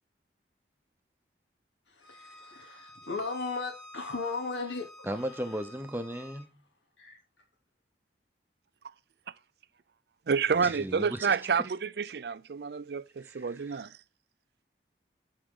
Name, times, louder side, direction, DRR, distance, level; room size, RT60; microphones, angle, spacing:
voice 1, 1.9-4.9 5.3-5.4 7.0-7.2, left 3 dB, 80° left, 3.1 m, -36 dB
Bowed string instrument, 2.0-6.4, equal, 30° left, 6.3 m, -51 dB
voice 2, 5.0-6.6 10.6-11.3 13.2-13.9, equal, 10° right, 0.9 m, -36 dB
voice 3, 10.3-13.9, right 5 dB, 60° right, 0.4 m, -29 dB
13.0 x 5.0 x 3.8 m
head